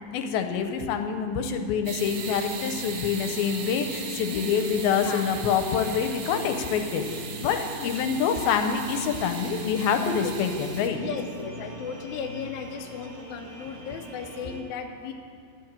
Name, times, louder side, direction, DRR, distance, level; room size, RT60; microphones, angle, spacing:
voice 1, 0.1-7.0 7.4-11.0 14.4-14.5, left 7 dB, 90° left, 6 dB, 2.6 m, -26 dB
sound 1, 1.9-10.9, right 6 dB, 85° right, 3.1 m, -39 dB
sound 2, 2.0-14.6, right 1 dB, 45° right, 4.1 m, -42 dB
voice 2, 2.3-2.7 4.3-4.5 5.0-5.2 7.4-7.9 9.9-10.3 10.9-15.1, left 6 dB, 70° left, 3 dB, 1.8 m, -36 dB
12.0 x 5.9 x 8.9 m, 2.2 s
omnidirectional pair, 4.3 m